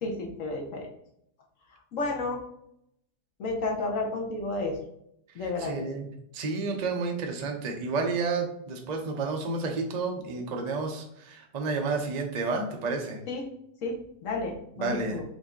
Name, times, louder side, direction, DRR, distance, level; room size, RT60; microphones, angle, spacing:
voice 1, 0.0-0.9 1.9-2.4 3.4-4.8 5.3-5.7 13.3-13.4 13.8-15.2, left 2 dB, 60° left, 1 dB, 1.1 m, -31 dB
voice 2, 5.4-6.1 6.3-13.2 14.8-15.2, right 4 dB, 60° right, 3 dB, 0.4 m, -31 dB
5.1 x 2.7 x 3.6 m, 0.75 s
omnidirectional pair, 1.7 m